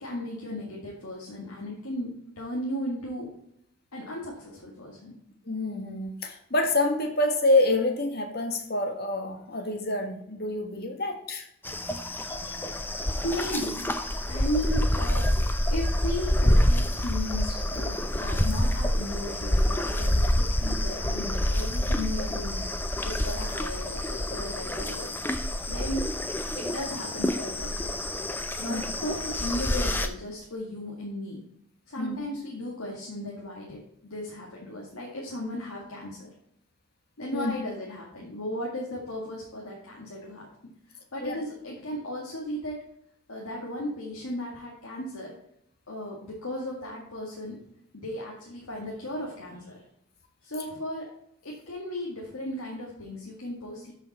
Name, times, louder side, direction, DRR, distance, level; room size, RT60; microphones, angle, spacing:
voice 1, 0.0-3.3 3.9-5.2 13.0-13.9 14.3-22.6 23.0-26.0 26.5-28.0 28.6-31.4 31.9-36.3 37.2-40.5 40.9-42.8 43.3-45.3 45.9-47.6 47.9-49.8 50.4-51.1 51.4-53.9, left 1 dB, 85° left, -4 dB, 2.0 m, -36 dB
voice 2, 5.4-11.5 12.3-12.7 28.6-28.8 32.0-32.2 37.3-37.5 41.2-41.4, left 2 dB, 45° left, 4 dB, 1.5 m, -27 dB
sound 1, 11.6-30.1, left 1 dB, 10° left, 0.6 m, -27 dB
13.0 x 5.6 x 4.2 m, 0.75 s
head